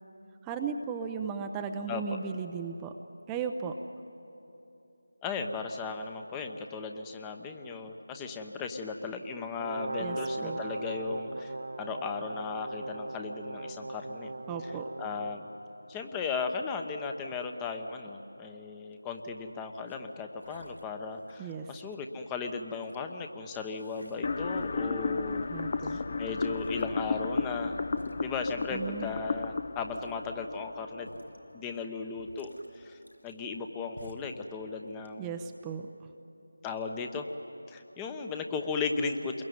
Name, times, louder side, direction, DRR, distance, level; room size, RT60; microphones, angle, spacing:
voice 1, 0.4-2.9 3.3-3.8 10.0-10.2 10.4-10.6 14.5-14.9 21.4-21.7 25.5-26.0 28.7-29.1 35.2-35.9, right 6 dB, 10° right, 5 dB, 0.7 m, -36 dB
voice 2, 1.9-2.2 5.2-14.3 14.6-14.7 15.0-15.5 15.9-25.5 25.8-27.8 28.2-31.1 31.5-35.3 36.6-37.3 37.7-39.4, left 4 dB, 10° left, 5 dB, 1.0 m, -36 dB
Brass instrument, 9.6-15.4, right 2 dB, 60° right, 1.3 m, -38 dB
sound 1, 18.9-19.3 19.8-20.0 20.4-21.7 22.2-23.0 23.7-24.9 25.3-25.8 26.3-26.4 26.6-26.9 27.5-27.6 27.9-28.2 29.0-29.1 29.6-30.2 31.0-31.4 31.7-31.8 32.1-33.6 34.0-34.4 34.8-35.4, left 1 dB, 90° left, 3.0 m, -52 dB
sound 2, 24.2-31.3, left 4 dB, 40° left, 0.7 m, -33 dB
28.5 x 21.5 x 9.5 m, 3.0 s
figure-of-eight pair, 165°, 0 cm